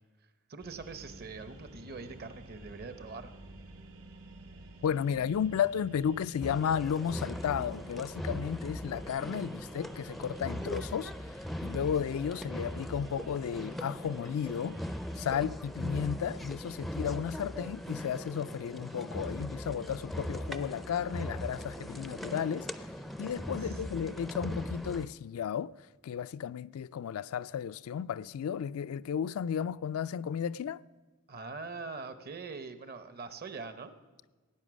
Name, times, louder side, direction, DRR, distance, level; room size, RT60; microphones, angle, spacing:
voice 1, 0.5-3.3 23.5-23.8 31.3-33.9, right 4 dB, 45° right, 0.8 m, -43 dB
sound 1, 0.6-15.4, right 1 dB, 70° right, 1.4 m, -53 dB
voice 2, 4.8-11.1 11.6-14.8 15.2-22.7 23.2-25.7 26.0-30.8, left 8 dB, 75° left, 0.3 m, -33 dB
sound 2, 6.4-25.1, equal, ahead, 0.4 m, -40 dB
17.5 x 9.4 x 6.2 m
head